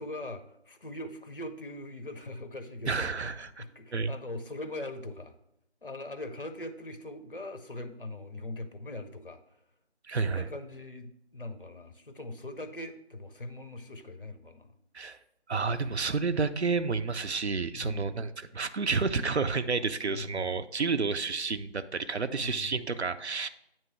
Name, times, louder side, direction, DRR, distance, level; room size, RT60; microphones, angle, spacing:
voice 1, 0.0-3.3 3.6-5.3 5.8-9.4 10.1-14.7 17.7-18.3 20.1-20.5 22.4-22.7, left 1 dB, 55° left, 8 dB, 0.7 m, -41 dB
voice 2, 2.9-3.6 3.9-4.1 10.1-10.5 14.9-15.2 15.5-23.5, right 4 dB, 75° right, 11 dB, 0.6 m, -30 dB
8.9 x 3.1 x 5.9 m, 0.79 s
figure-of-eight pair, 165°, 33 cm